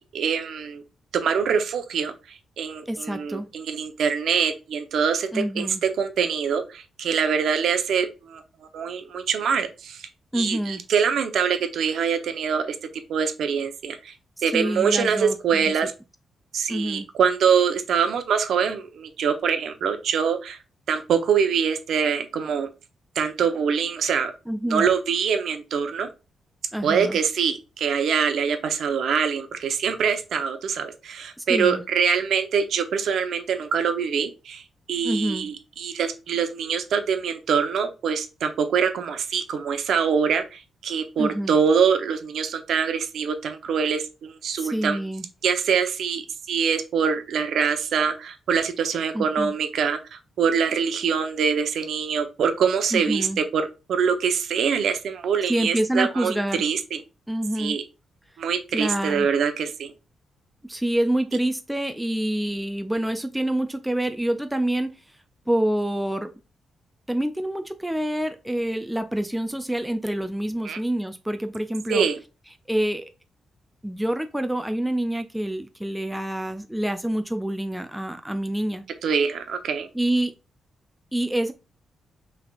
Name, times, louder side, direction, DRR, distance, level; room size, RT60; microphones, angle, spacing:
voice 1, 0.1-0.8 1.1-2.1 2.6-5.7 6.0-8.4 8.7-10.1 10.3-12.7 13.1-14.1 14.4-15.9 16.5-20.6 20.9-22.7 23.1-24.3 24.7-26.1 26.8-34.6 34.9-45.0 45.4-53.3 53.5-53.6 53.9-57.0 57.6-57.8 58.4-59.9 70.6-70.8 71.9-72.2 79.0-79.9, right 6 dB, 70° right, 0.7 m, -24 dB
voice 2, 2.9-3.5 5.3-5.8 10.3-10.8 14.5-15.7 16.7-17.1 24.5-24.9 26.7-27.2 31.5-31.8 35.0-35.5 41.2-41.5 44.5-45.3 49.1-49.5 52.9-53.4 55.5-56.6 57.3-57.8 58.7-59.3 60.6-64.9 65.5-66.3 67.1-72.1 72.7-73.1 73.8-78.8 79.9-80.3 81.1-81.5, right 1 dB, 5° right, 0.3 m, -27 dB
5.9 x 3.4 x 2.4 m
wide cardioid pair, 165°, 0 cm